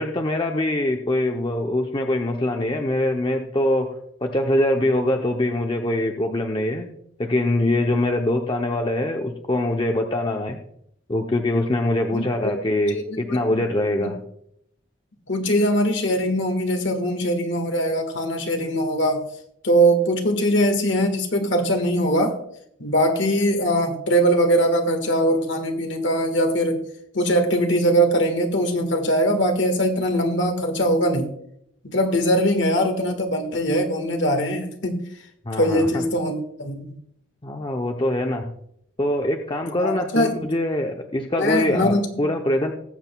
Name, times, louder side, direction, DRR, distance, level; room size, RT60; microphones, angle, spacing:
voice 1, 0.0-3.9 4.2-6.9 7.2-10.6 11.1-14.2 35.5-36.1 37.4-38.6 39.0-42.7, left 1 dB, 25° left, 3 dB, 0.6 m, -23 dB
voice 2, 12.1-12.6 12.9-13.6 14.0-14.1 15.3-19.3 19.6-22.4 22.8-26.8 27.1-31.3 31.8-35.0 35.6-36.9 39.8-40.4 41.4-42.2, equal, 60° left, 4 dB, 1.6 m, -21 dB
19.0 x 7.7 x 2.3 m, 0.72 s
head